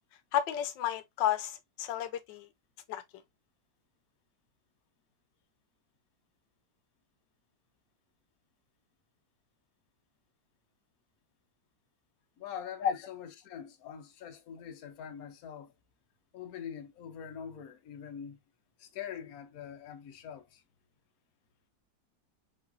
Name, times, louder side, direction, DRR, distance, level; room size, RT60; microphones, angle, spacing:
voice 1, 0.3-2.5 2.9-3.0 12.8-12.9, left 10 dB, 85° left, 1.3 m, -31 dB
voice 2, 12.4-15.7 16.3-18.4 18.8-20.6, left 8 dB, 60° left, 1.2 m, -44 dB
5.1 x 3.1 x 2.6 m
omnidirectional pair, 1.9 m